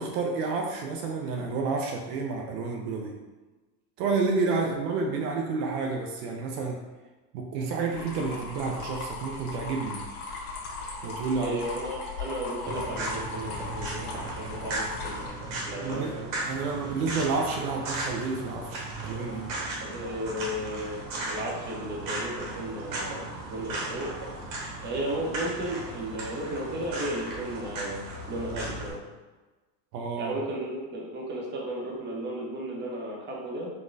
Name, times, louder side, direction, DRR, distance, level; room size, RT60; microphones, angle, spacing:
voice 1, 0.0-3.2 4.0-6.8 7.3-10.0 11.0-11.6 15.8-16.1 16.5-19.5 29.9-30.4, right 4 dB, 65° right, 1 dB, 0.6 m, -30 dB
sound 1, 7.9-15.3, left 3 dB, 55° left, 1.0 m, -38 dB
voice 2, 11.4-14.1 14.4-16.3 19.8-21.0 21.3-24.1 24.8-29.0 30.2-33.7, right 1 dB, 20° right, -3 dB, 0.7 m, -34 dB
sound 2, 12.6-28.9, right 2 dB, 45° right, 1.1 m, -36 dB
4.0 x 2.2 x 2.5 m, 1.2 s
supercardioid pair, 110°, 50 cm